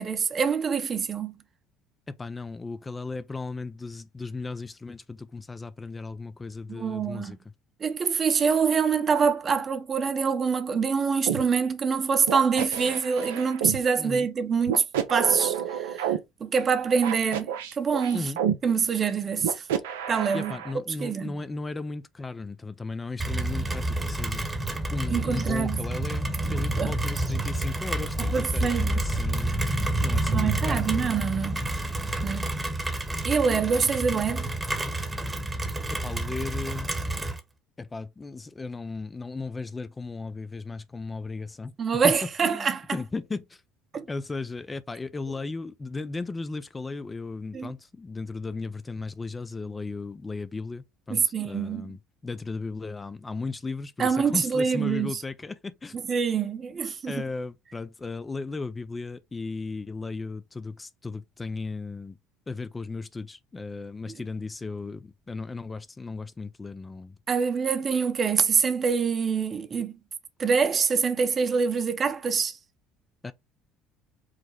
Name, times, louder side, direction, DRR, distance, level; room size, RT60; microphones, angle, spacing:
voice 1, 0.0-1.3 6.7-7.4 7.8-14.8 15.1-18.3 18.6-19.7 20.1-20.5 21.0-21.4 25.1-25.8 26.4-26.9 28.2-29.1 30.3-31.6 32.2-32.6 33.2-34.5 41.8-42.8 43.9-44.1 47.5-47.7 51.1-51.9 54.0-55.2 55.9-57.2 67.3-69.9 70.4-72.6, right 6 dB, 40° right, 0.8 m, -25 dB
voice 2, 2.1-7.4 14.0-14.3 18.1-18.4 20.3-24.4 24.9-30.8 35.9-36.9 37.8-41.7 42.0-42.2 42.4-43.6 44.1-56.0 57.1-62.2 62.5-67.2 73.2-73.3, left 3 dB, 20° left, 0.4 m, -36 dB
sound 1, 11.3-11.4 12.3-13.8 14.7-16.2 17.0-18.6 19.4-20.7, right 9 dB, 85° right, 0.6 m, -29 dB
Rain, 23.2-37.4, right 1 dB, 15° right, 1.1 m, -29 dB
5.0 x 2.1 x 4.1 m
hypercardioid pair, 65°, 0 cm